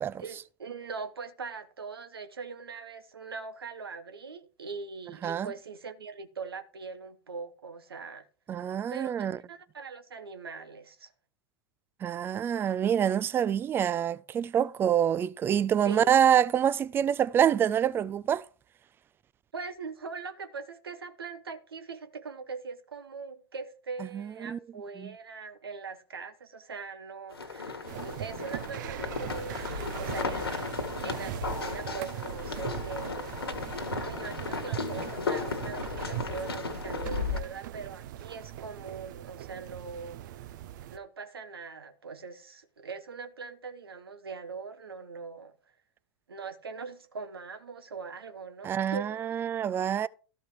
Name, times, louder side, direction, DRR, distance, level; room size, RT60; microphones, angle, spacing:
voice 1, 0.2-8.3 8.9-9.1 9.5-11.1 15.8-16.1 19.5-30.6 31.0-33.4 34.0-40.2 40.9-45.5 46.3-49.2, right 5 dB, 75° right, 1.0 m, -41 dB
voice 2, 8.5-9.4 12.0-18.4 24.1-24.6 25.0-25.1 48.6-50.1, right 9 dB, 15° right, 0.4 m, -26 dB
sound 1, 27.3-37.4, left 4 dB, 75° left, 1.7 m, -35 dB
sound 2, 27.9-41.0, right 13 dB, 50° right, 0.7 m, -40 dB
13.5 x 5.2 x 4.7 m
figure-of-eight pair, 95°, 13 cm